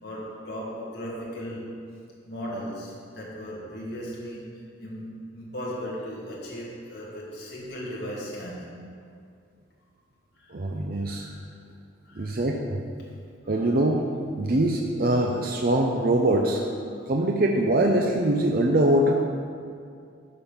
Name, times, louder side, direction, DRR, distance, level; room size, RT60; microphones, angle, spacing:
voice 1, 0.0-1.8 2.3-4.4 4.8-8.7 11.1-11.4 12.0-12.4 13.5-13.7, equal, 55° left, -5 dB, 1.8 m, -37 dB
voice 2, 10.5-11.3 12.2-12.8 13.5-14.1 14.4-16.6 17.1-19.1, right 1 dB, 45° right, 1 dB, 0.6 m, -23 dB
12.0 x 5.3 x 5.8 m, 2.3 s
head